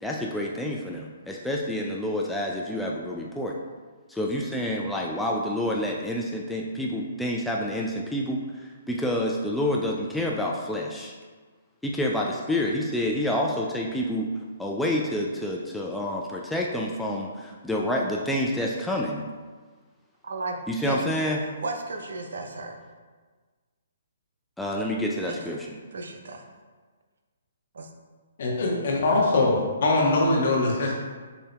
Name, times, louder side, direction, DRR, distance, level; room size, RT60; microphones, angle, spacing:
voice 1, 0.0-3.6 4.1-11.1 11.8-14.3 14.6-19.3 20.7-21.4 24.6-25.7, left 1 dB, 5° left, -2 dB, 0.3 m, -28 dB
voice 2, 20.2-20.6 20.9-21.3 21.6-22.8 25.2-25.6 25.9-26.4 27.7-27.9, right 3 dB, 70° right, 3 dB, 0.5 m, -34 dB
voice 3, 28.4-30.9, left 2 dB, 60° left, -2 dB, 1.0 m, -22 dB
6.6 x 2.7 x 2.2 m, 1.4 s
figure-of-eight pair, 135°, 0 cm